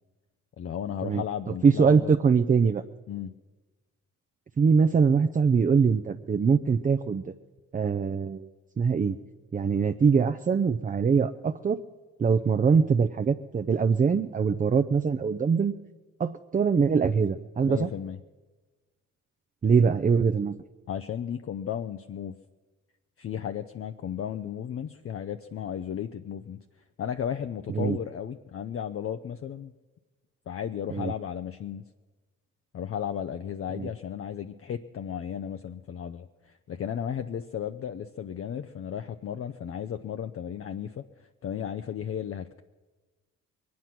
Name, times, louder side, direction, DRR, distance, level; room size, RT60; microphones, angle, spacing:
voice 1, 0.6-2.2 3.1-3.3 17.6-18.2 20.9-22.4 23.2-26.6 27.0-29.7 30.5-31.8 32.7-42.6, left 9 dB, 45° left, 8 dB, 0.6 m, -34 dB
voice 2, 1.6-2.8 4.6-7.3 7.7-8.5 8.8-9.2 9.5-11.8 12.2-15.7 16.2-17.9 19.6-20.6 27.7-28.0 30.9-31.1 33.7-33.9, right 5 dB, 25° right, 9 dB, 0.5 m, -23 dB
22.0 x 9.5 x 5.9 m, 1.3 s
supercardioid pair, 70°, 33 cm